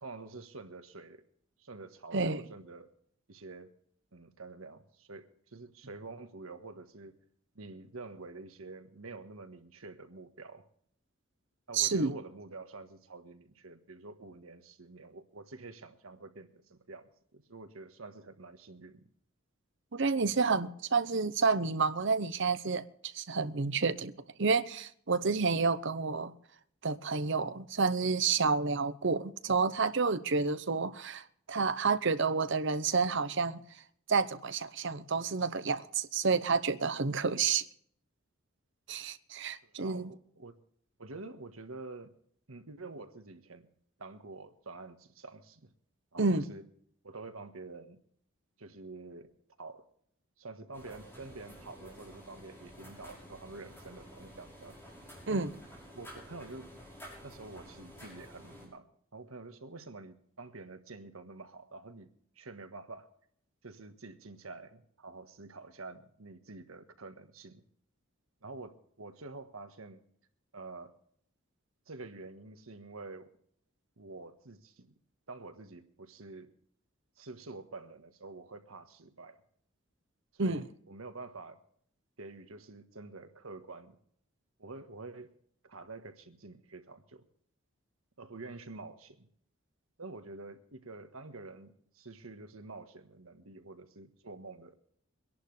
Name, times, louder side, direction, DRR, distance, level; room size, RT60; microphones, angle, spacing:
voice 1, 0.0-1.2 1.6-2.9 3.3-3.7 4.1-7.2 7.5-10.7 11.7-19.0 39.6-40.6 41.0-42.1 42.5-43.7 44.0-45.7 46.1-46.6 47.0-48.0 48.6-49.3 49.6-49.9 50.4-54.8 55.3-55.5 55.9-56.7 57.2-58.9 59.1-63.1 63.6-67.6 68.4-70.0 70.5-71.0 71.9-73.3 74.0-74.9 75.3-76.5 77.2-79.4 80.3-81.6 82.2-84.0 84.6-85.3 85.6-87.2 88.2-89.3 90.0-94.7, right 3 dB, 90° right, 1.5 m, -47 dB
voice 2, 2.1-2.4 11.7-12.1 19.9-24.1 24.4-26.3 26.8-33.6 34.1-37.7 38.9-40.1 46.2-46.5 55.3-55.5 80.4-80.6, right 4 dB, 60° right, 0.9 m, -30 dB
sound 1, 50.7-58.7, equal, 10° left, 6.1 m, -51 dB
24.0 x 11.0 x 3.3 m
head